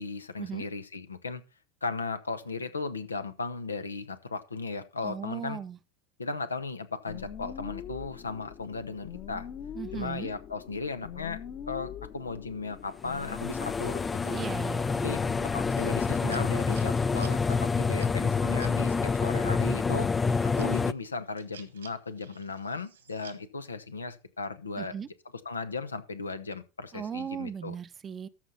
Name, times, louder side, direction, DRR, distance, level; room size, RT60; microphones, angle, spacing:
voice 1, 0.0-1.4 1.8-5.6 6.2-9.5 9.9-11.4 11.7-14.4 15.0-20.1 20.6-24.9 25.4-27.7, left 4 dB, 85° left, 0.9 m, -36 dB
voice 2, 5.0-5.8 9.8-10.3 14.3-15.2 24.8-25.1 26.9-28.3, right 7 dB, 30° right, 0.7 m, -37 dB
sound 1, 7.1-16.5, left 8 dB, 40° left, 1.3 m, -43 dB
sound 2, 13.1-20.9, left 4 dB, 20° left, 0.4 m, -27 dB
sound 3, 15.7-19.2 19.7-23.4, right 8 dB, 75° right, 1.7 m, -53 dB
13.5 x 5.9 x 4.2 m
figure-of-eight pair, 80°, 0 cm